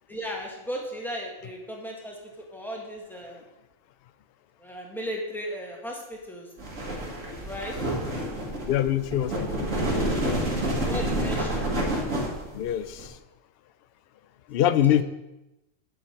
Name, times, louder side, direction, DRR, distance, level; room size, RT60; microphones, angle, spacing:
voice 1, 0.1-3.4 4.6-6.5 7.4-7.8 10.6-11.7 14.6-14.8, equal, ahead, -2 dB, 1.7 m, -36 dB
sound 1, 6.6-13.1, right 1 dB, 75° right, 2.2 m, -28 dB
voice 2, 8.7-9.7 12.5-13.2 14.5-15.0, left 11 dB, 60° left, 13 dB, 0.6 m, -24 dB
9.3 x 6.9 x 4.5 m, 0.95 s
omnidirectional pair, 1.4 m